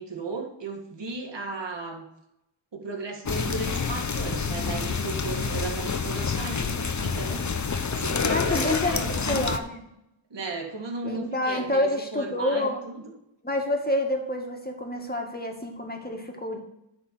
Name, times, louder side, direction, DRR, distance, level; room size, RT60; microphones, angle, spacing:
voice 1, 0.0-2.1 2.7-9.6 10.3-11.8 12.1-13.0, right 3 dB, 55° right, 1 dB, 2.1 m, -35 dB
sound 1, 3.3-9.6, left 5 dB, 35° left, 0.8 m, -28 dB
voice 2, 8.3-9.0 9.3-9.8 11.0-12.8 13.4-16.6, left 1 dB, 20° left, 2 dB, 2.1 m, -28 dB
10.5 x 4.0 x 6.9 m, 0.82 s
cardioid pair, 45°, 49 cm